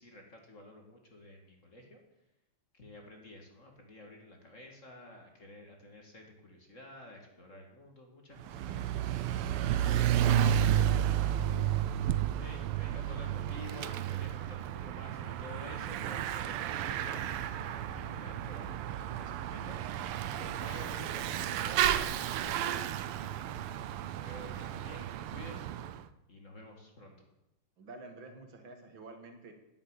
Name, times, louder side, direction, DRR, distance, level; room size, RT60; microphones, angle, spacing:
voice 1, 0.0-2.0 2.7-11.0 12.4-22.9 23.1-23.6 24.2-25.7 26.3-27.3, left 1 dB, 35° left, 2 dB, 2.3 m, -51 dB
Bicycle / Mechanisms, 8.4-26.0, right 10 dB, 85° right, 1.7 m, -32 dB
voice 2, 27.8-29.5, right 3 dB, 65° right, 5 dB, 2.5 m, -49 dB
10.5 x 8.8 x 9.8 m, 0.89 s
omnidirectional pair, 2.4 m